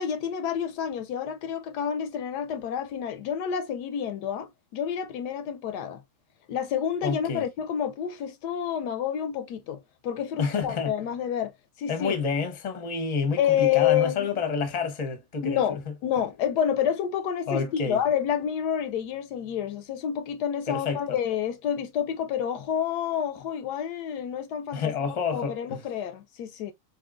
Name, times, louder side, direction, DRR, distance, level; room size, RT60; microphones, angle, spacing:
voice 1, 0.0-6.0 6.5-11.5 11.8-12.2 13.4-14.3 15.4-24.9 25.3-26.7, left 9 dB, 75° left, 1.1 m, -28 dB
voice 2, 7.0-7.5 10.4-10.9 11.9-15.9 17.5-18.0 20.7-21.2 24.7-25.8, left 5 dB, 30° left, 0.7 m, -29 dB
4.5 x 2.9 x 2.4 m
omnidirectional pair, 1.8 m